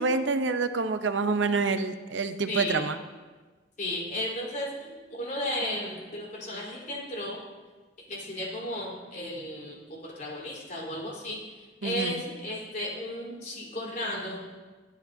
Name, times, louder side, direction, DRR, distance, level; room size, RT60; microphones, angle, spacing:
voice 1, 0.0-3.0 11.8-12.2, right 4 dB, 80° right, 9 dB, 0.7 m, -27 dB
voice 2, 2.5-2.8 3.8-7.4 8.1-11.4 11.8-14.4, left 1 dB, 45° left, -3 dB, 4.0 m, -34 dB
23.0 x 10.5 x 2.7 m, 1.3 s
head